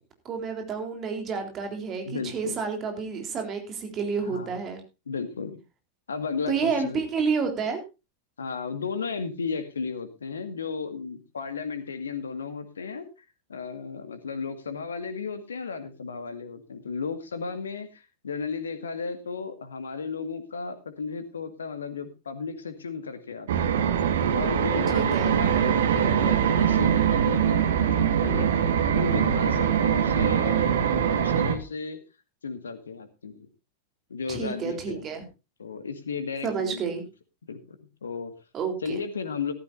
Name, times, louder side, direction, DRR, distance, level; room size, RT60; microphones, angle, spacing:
voice 1, 0.3-4.8 6.5-7.8 24.9-25.4 34.3-35.2 36.4-37.0 38.5-39.0, right 5 dB, 30° right, 4 dB, 3.7 m, -30 dB
voice 2, 2.1-2.6 4.3-4.5 5.1-5.6 6.1-7.0 8.4-13.1 13.5-23.9 24.3-28.5 28.9-32.0 32.4-33.5 34.1-35.1 35.6-36.8 37.4-37.8 38.0-38.3 38.8-39.5, left 5 dB, 70° left, 10 dB, 1.9 m, -34 dB
sound 1, 23.5-31.5, right 8 dB, 60° right, 1.6 m, -23 dB
14.5 x 14.0 x 2.7 m, 0.28 s
figure-of-eight pair, 90°, 0 cm